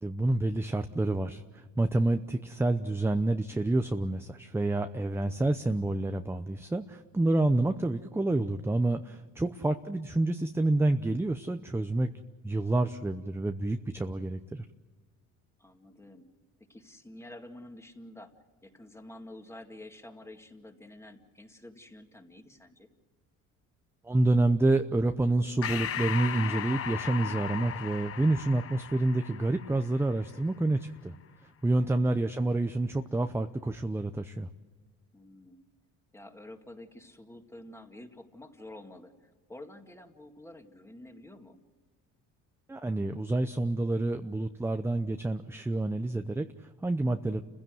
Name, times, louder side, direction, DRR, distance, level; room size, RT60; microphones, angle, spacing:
voice 1, 0.0-12.1 12.4-14.7 24.0-31.1 31.6-34.5 42.7-47.4, right 2 dB, 10° right, 8 dB, 0.7 m, -28 dB
voice 2, 15.6-16.3 16.6-18.3 18.6-22.9 31.8-32.1 35.1-35.6 36.1-41.6, left 1 dB, 10° left, 5 dB, 2.1 m, -49 dB
Breathing, 25.6-30.5, left 9 dB, 45° left, 0.9 m, -37 dB
29.5 x 16.0 x 7.7 m, 1.5 s
cardioid pair, 110°, 32 cm